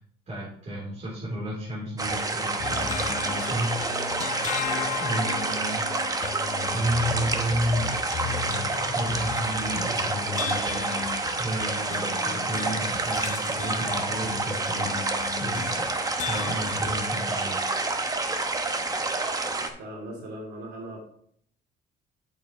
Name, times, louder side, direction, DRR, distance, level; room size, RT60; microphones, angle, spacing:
voice 1, 0.3-3.8 5.0-5.8 6.7-10.9 11.4-14.9 15.4-15.9 16.3-17.6, equal, 45° right, -6 dB, 3.6 m, -32 dB
sound 1, 2.0-19.7, right 3 dB, 20° right, 1.0 m, -28 dB
sound 2, 2.6-17.3, left 8 dB, 50° left, 0.7 m, -36 dB
voice 2, 19.6-21.0, right 1 dB, 70° right, -1 dB, 3.1 m, -39 dB
8.5 x 7.2 x 3.1 m, 0.64 s
cardioid pair, 110°, 17 cm